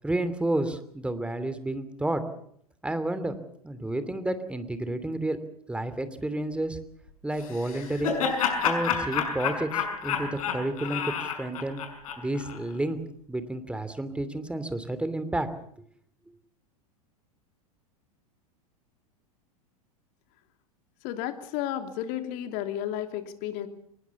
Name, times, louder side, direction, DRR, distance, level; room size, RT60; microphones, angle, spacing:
voice 1, 0.0-2.2 2.8-3.4 3.6-5.4 5.7-6.8 7.2-8.2 8.6-11.8 12.2-13.0 13.3-15.5, right 1 dB, 5° right, 12 dB, 2.9 m, -30 dB
Laughter, 7.4-12.6, left 7 dB, 65° left, 5.7 m, -29 dB
voice 2, 21.0-23.7, left 11 dB, 50° left, 7 dB, 2.9 m, -32 dB
24.5 x 20.5 x 7.2 m, 0.66 s
hypercardioid pair, 95°, 19 cm